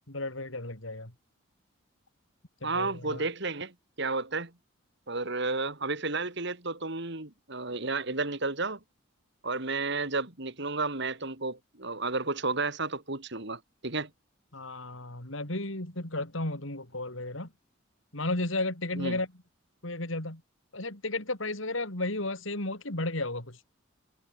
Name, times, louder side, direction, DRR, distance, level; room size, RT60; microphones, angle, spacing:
voice 1, 0.1-1.1 2.6-3.2 14.5-17.5 18.1-19.3 19.8-20.4 20.7-23.6, left 2 dB, 70° left, 4.6 m, -33 dB
voice 2, 2.6-4.5 5.1-8.8 9.4-14.1 18.9-19.2, right 3 dB, 55° right, 2.8 m, -32 dB
head